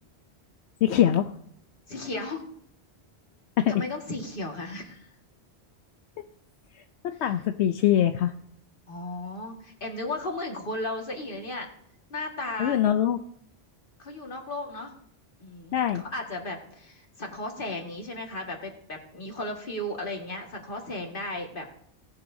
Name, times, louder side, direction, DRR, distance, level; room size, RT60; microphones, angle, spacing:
voice 1, 0.8-1.3 3.6-3.8 6.7-8.3 12.6-13.2 15.7-16.0, left 10 dB, 85° left, 7 dB, 0.9 m, -23 dB
voice 2, 1.9-2.4 3.7-5.1 8.9-11.7 12.1-12.8 14.0-14.9 15.4-21.7, left 2 dB, 55° left, 1 dB, 2.0 m, -35 dB
18.5 x 10.5 x 2.7 m, 0.67 s
omnidirectional pair, 1.1 m